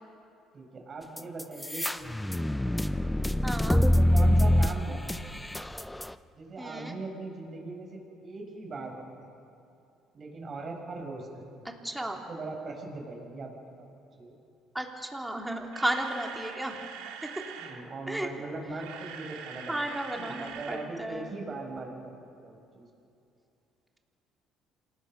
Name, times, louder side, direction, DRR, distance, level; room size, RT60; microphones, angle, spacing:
voice 1, 0.5-2.4 3.5-5.0 6.4-9.3 10.1-11.6 12.1-13.9 14.2-14.4 17.6-22.1 22.4-22.9, right 3 dB, 40° right, 1 dB, 6.0 m, -40 dB
sound 1, 1.2-6.1, left 1 dB, 10° left, 0.8 m, -25 dB
voice 2, 3.4-3.8 6.6-6.9 11.8-12.2 14.7-16.8 17.2-17.3 18.1-18.3 19.7-21.3, right 1 dB, 10° right, 1 dB, 3.3 m, -33 dB
Camera, 15.4-17.8 18.6-20.9 21.1-21.3 21.8-21.9, right 7 dB, 85° right, 2.2 m, -43 dB
27.0 x 18.5 x 6.0 m, 2.7 s
supercardioid pair, 70°, 0 cm